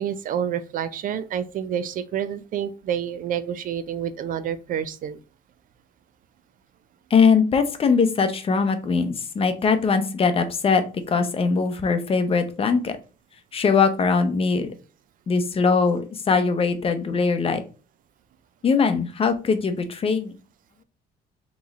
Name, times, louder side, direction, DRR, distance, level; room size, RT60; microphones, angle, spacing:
voice 1, 0.0-5.2, right 9 dB, 55° right, 13 dB, 0.4 m, -28 dB
voice 2, 7.1-13.0 13.5-14.7 15.3-17.6 18.6-20.3, left 5 dB, 35° left, 8 dB, 0.7 m, -21 dB
3.6 x 3.1 x 4.0 m, 0.34 s
cardioid pair, 110°, 17 cm